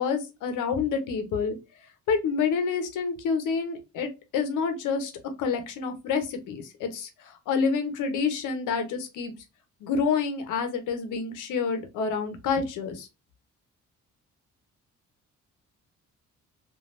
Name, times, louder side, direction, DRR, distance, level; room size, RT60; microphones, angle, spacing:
voice 1, 0.0-1.6 2.1-5.1 5.4-9.3 9.8-13.1, left 5 dB, 85° left, 8 dB, 0.8 m, -28 dB
3.3 x 2.5 x 2.5 m, 0.26 s
cardioid pair, 90°, 30 cm